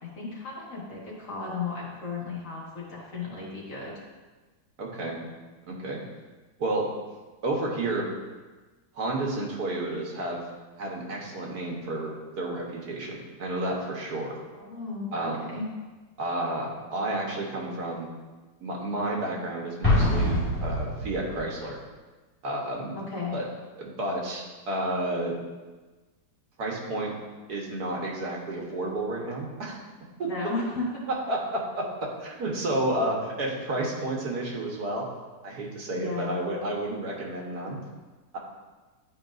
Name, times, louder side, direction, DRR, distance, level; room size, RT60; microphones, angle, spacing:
voice 1, 0.0-3.9 14.5-15.7 23.0-23.4 30.2-31.0 35.9-36.4, left 4 dB, 55° left, -5 dB, 2.0 m, -34 dB
voice 2, 4.8-5.2 5.7-6.0 6.6-6.9 7.4-8.1 9.0-10.4 10.8-14.3 15.1-15.5 16.2-18.1 18.6-21.8 22.4-23.0 23.3-23.5 23.8-25.4 26.6-27.1 27.5-29.8 30.2-30.3 31.3-35.1 35.4-37.8, right 1 dB, 70° right, -1 dB, 1.7 m, -31 dB
Explosion, 19.8-21.5, left 1 dB, 10° left, 2.0 m, -25 dB
11.0 x 4.8 x 2.6 m, 1.2 s
omnidirectional pair, 1.7 m